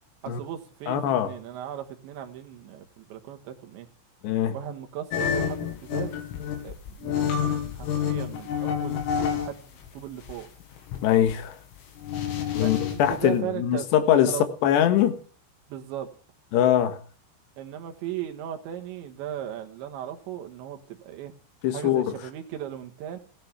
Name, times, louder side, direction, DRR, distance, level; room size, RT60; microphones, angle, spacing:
voice 1, 0.2-3.9 4.5-6.2 6.6-10.5 12.6-14.5 15.7-16.1 17.6-21.3 21.7-23.2, right 10 dB, 70° right, 5 dB, 3.4 m, -37 dB
voice 2, 0.9-1.3 4.2-4.5 11.0-11.6 12.5-14.3 14.6-15.2 16.5-17.0 21.6-22.1, left 10 dB, 65° left, 7 dB, 3.3 m, -22 dB
sound 1, 5.1-9.5 9.8-13.2, left 8 dB, 85° left, 5.4 m, -28 dB
16.5 x 10.5 x 7.1 m, 0.41 s
omnidirectional pair, 5.9 m